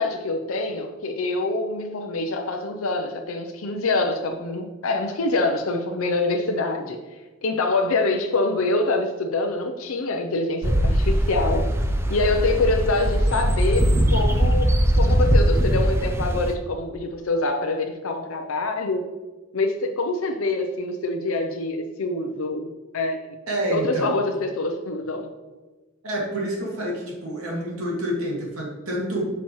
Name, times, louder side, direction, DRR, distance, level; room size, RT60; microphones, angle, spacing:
voice 1, 0.0-7.0 7.4-11.7 12.1-19.1 19.5-23.3 23.7-25.3, left 2 dB, 75° left, 3 dB, 0.6 m, -25 dB
sound 1, 10.6-16.5, equal, 10° right, 0.5 m, -20 dB
voice 2, 23.5-24.1 26.0-29.3, right 1 dB, 90° right, -2 dB, 2.3 m, -28 dB
8.4 x 5.8 x 3.1 m, 1.2 s
head